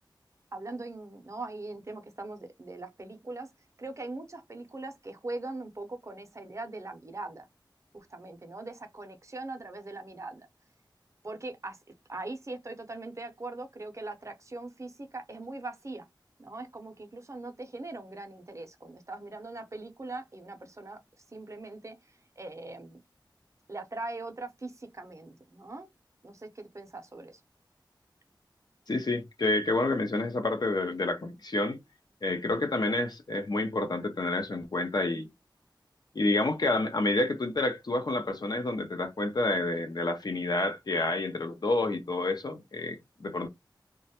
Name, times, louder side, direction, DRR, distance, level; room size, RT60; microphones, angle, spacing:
voice 1, 0.5-3.5 3.8-7.5 7.9-10.5 11.2-11.8 12.1-16.1 16.4-21.0 21.3-22.0 22.4-23.0 23.7-25.9 26.2-27.4, right 2 dB, 40° right, 0.6 m, -41 dB
voice 2, 28.9-31.8 32.2-35.3 36.1-43.5, left 2 dB, 55° left, 0.6 m, -29 dB
2.2 x 2.1 x 2.8 m
wide cardioid pair, 70°, 8 cm